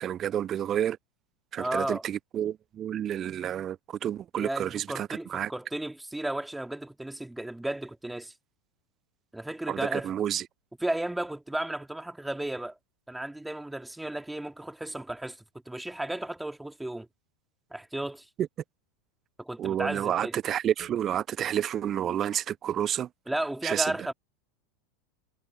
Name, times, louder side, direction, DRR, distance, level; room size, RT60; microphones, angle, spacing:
voice 1, 0.0-1.0 1.5-5.5 9.7-10.4 19.6-23.1 23.6-23.9, right 10 dB, 35° right, 0.7 m, -30 dB
voice 2, 1.6-2.0 4.4-8.3 9.3-10.1 10.8-12.8 13.1-15.4 15.7-17.1 17.7-18.3 19.4-20.4 23.3-24.1, right 1 dB, 5° right, 3.5 m, -34 dB
figure-of-eight pair, 85°, 0 cm